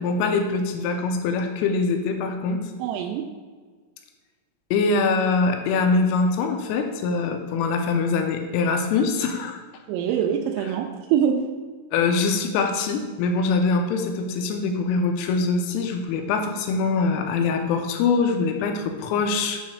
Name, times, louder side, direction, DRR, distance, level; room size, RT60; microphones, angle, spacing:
voice 1, 0.0-2.6 4.7-9.6 11.9-19.6, left 4 dB, 85° left, 4 dB, 3.2 m, -23 dB
voice 2, 2.8-3.3 9.9-11.5, right 8 dB, 90° right, 3 dB, 3.3 m, -24 dB
8.8 x 3.1 x 6.3 m, 1.5 s
omnidirectional pair, 5.9 m